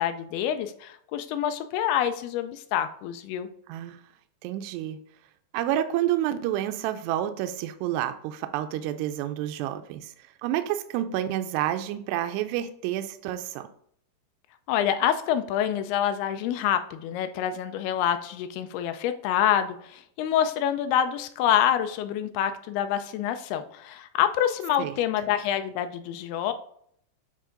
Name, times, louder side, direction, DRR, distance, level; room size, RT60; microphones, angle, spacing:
voice 1, 0.0-3.5 14.7-26.5, left 10 dB, 80° left, 8 dB, 2.3 m, -26 dB
voice 2, 3.7-4.0 4.4-5.0 5.5-13.7 24.8-24.9, right 12 dB, 85° right, 8 dB, 2.6 m, -29 dB
9.2 x 3.7 x 3.8 m, 0.66 s
omnidirectional pair, 5.0 m